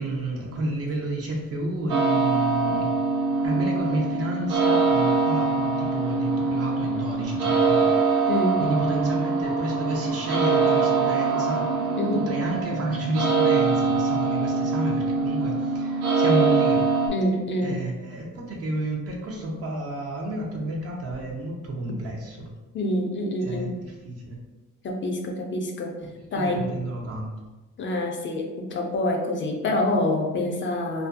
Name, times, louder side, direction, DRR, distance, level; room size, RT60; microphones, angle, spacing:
voice 1, 0.0-2.9 3.4-7.9 8.6-11.6 12.1-16.8 17.6-22.5 23.4-24.4 26.4-27.3, right 1 dB, 50° right, 0 dB, 0.6 m, -30 dB
sound 1, 1.9-17.1, right 4 dB, 90° right, 0.6 m, -23 dB
voice 2, 8.3-8.6 12.0-12.3 17.1-17.8 22.7-23.8 24.8-26.0 26.3-26.7 27.8-31.1, left 1 dB, 40° left, 2 dB, 0.4 m, -26 dB
2.5 x 2.2 x 2.5 m, 1.1 s
cardioid pair, 90°, 30 cm